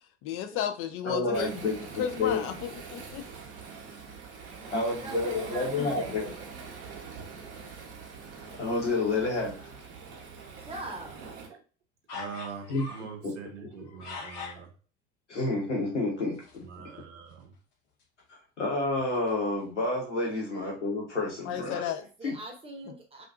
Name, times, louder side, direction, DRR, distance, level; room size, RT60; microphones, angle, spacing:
voice 1, 0.2-3.3 5.8-6.1 21.5-22.0 22.9-23.0, left 9 dB, 40° left, 0.4 m, -34 dB
voice 2, 1.0-1.8 2.2-2.4 4.7-6.3 8.6-9.7 12.7-12.8 13.2-13.3 15.3-16.7 18.6-21.9 22.2-22.3, left 2 dB, 85° left, 1.0 m, -29 dB
Waves surf, 1.3-11.5, right 5 dB, 45° right, 0.8 m, -44 dB
voice 3, 4.4-6.5 10.6-11.1 22.2-23.2, right 2 dB, 15° right, 0.8 m, -43 dB
sound 1, 12.1-13.2 13.7-14.7 16.3-16.7 17.0-17.1 17.3-17.4 18.0-18.2 18.9-19.9 20.3-20.4, left 5 dB, 60° left, 0.9 m, -43 dB
voice 4, 12.1-14.7 16.6-17.5, right 6 dB, 80° right, 0.5 m, -43 dB
2.5 x 2.3 x 2.3 m
figure-of-eight pair, 65°, 34 cm